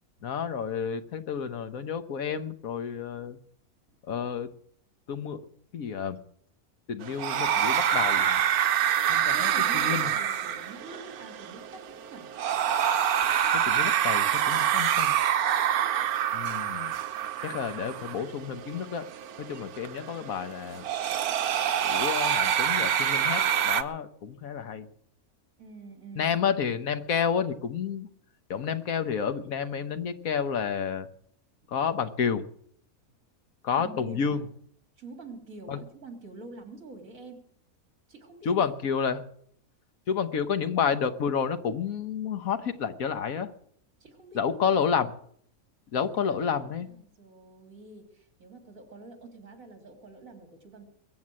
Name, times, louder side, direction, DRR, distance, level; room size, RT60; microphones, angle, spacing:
voice 1, 0.2-3.4 4.1-4.5 5.1-5.4 5.7-6.2 6.9-8.4 9.1-10.1 13.5-15.2 16.3-17.0 17.4-19.0 19.4-20.8 21.8-24.9 26.1-28.1 28.5-31.1 31.7-32.4 33.6-34.4 35.7-35.8 38.4-39.2 40.1-43.5 44.3-45.1 45.9-46.9, left 7 dB, 70° left, 10 dB, 1.5 m, -30 dB
sound 1, 7.0-23.8, right 9 dB, 85° right, 1.3 m, -27 dB
voice 2, 9.3-12.3 25.6-26.4 33.7-34.4 35.0-37.4 38.1-38.7 44.0-44.8 46.3-50.8, right 3 dB, 65° right, 4 dB, 3.3 m, -46 dB
22.0 x 8.0 x 7.6 m, 0.65 s
omnidirectional pair, 1.5 m